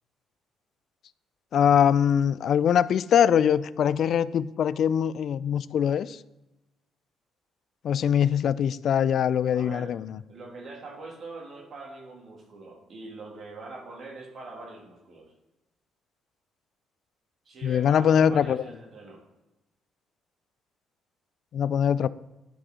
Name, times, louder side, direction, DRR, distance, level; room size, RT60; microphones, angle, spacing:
voice 1, 1.5-6.2 7.8-10.2 17.6-18.6 21.5-22.1, left 8 dB, 60° left, 0.3 m, -22 dB
voice 2, 9.5-10.0 10.3-15.3 17.4-19.2, right 3 dB, 55° right, 2.3 m, -43 dB
11.0 x 4.9 x 3.6 m
hypercardioid pair, 55°, 0 cm